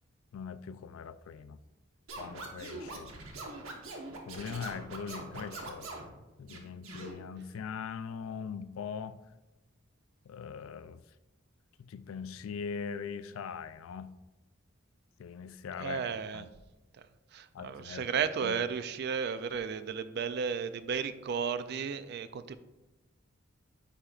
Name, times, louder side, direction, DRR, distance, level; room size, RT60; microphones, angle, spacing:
voice 1, 0.3-1.6 2.2-3.1 4.3-5.9 6.4-9.2 10.3-11.0 11.8-14.1 15.2-16.5 17.5-18.1 18.4-18.6, left 6 dB, 80° left, 14 dB, 0.3 m, -41 dB
Scratching (performance technique), 2.1-6.1 6.5-7.1, right 2 dB, 90° right, 1.0 m, -43 dB
voice 2, 15.8-16.4 17.3-22.6, right 6 dB, 55° right, 13 dB, 0.3 m, -34 dB
9.8 x 4.4 x 2.4 m, 1.0 s
head